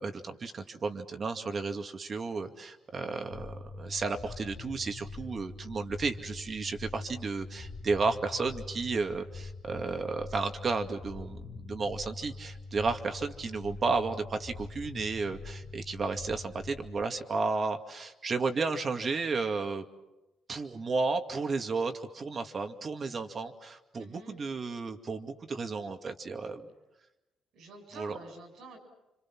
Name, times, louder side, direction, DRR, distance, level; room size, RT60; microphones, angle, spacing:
voice 1, 0.0-19.9 20.5-26.7 28.0-28.2, right 4 dB, 40° right, 6 dB, 2.2 m, -33 dB
sound 1, 3.3-17.0, left 3 dB, 65° left, 2.4 m, -44 dB
voice 2, 24.0-24.4 27.5-28.8, right 3 dB, 75° right, 4 dB, 7.5 m, -48 dB
30.0 x 26.0 x 6.1 m, 0.98 s
cardioid pair, 90°, 0 cm